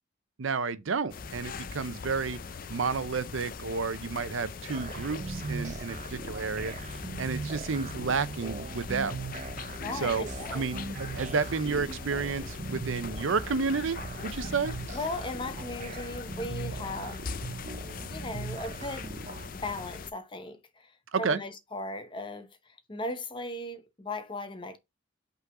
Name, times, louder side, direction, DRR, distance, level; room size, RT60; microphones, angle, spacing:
voice 1, 0.4-2.4 2.7-6.7 7.2-9.2 10.0-14.8 21.1-21.4, right 5 dB, 75° right, 0.6 m, -31 dB
sound 1, 1.1-20.1, left 5 dB, 45° left, 0.4 m, -41 dB
sound 2, 4.7-19.5, right 3 dB, 35° right, 0.5 m, -40 dB
sound 3, 8.0-16.6, left 1 dB, 90° left, 1.1 m, -51 dB
voice 2, 9.8-10.7 14.3-14.5 14.9-17.4 18.1-19.2 19.6-20.9 21.2-24.8, left 2 dB, 25° left, 0.8 m, -37 dB
5.6 x 3.8 x 4.9 m
head